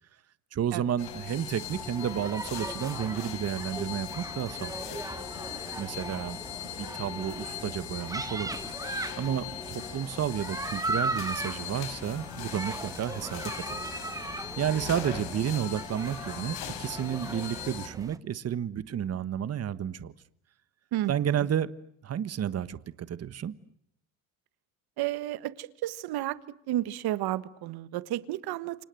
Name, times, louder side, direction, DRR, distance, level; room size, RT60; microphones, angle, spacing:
voice 1, 0.5-5.0 5.8-6.4 6.8-13.8 14.6-20.1 21.1-21.7 22.0-23.5, right 9 dB, 35° right, 15 dB, 1.3 m, -31 dB
sound 1, 1.0-17.9, left 10 dB, 65° left, 4.0 m, -40 dB
sound 2, 1.6-18.2, right 2 dB, 10° right, 1.2 m, -38 dB
voice 2, 20.9-21.3 25.0-26.4 26.7-28.8, right 14 dB, 65° right, 16 dB, 1.6 m, -32 dB
29.5 x 25.5 x 7.8 m, 0.70 s
cardioid pair, 115°, 41 cm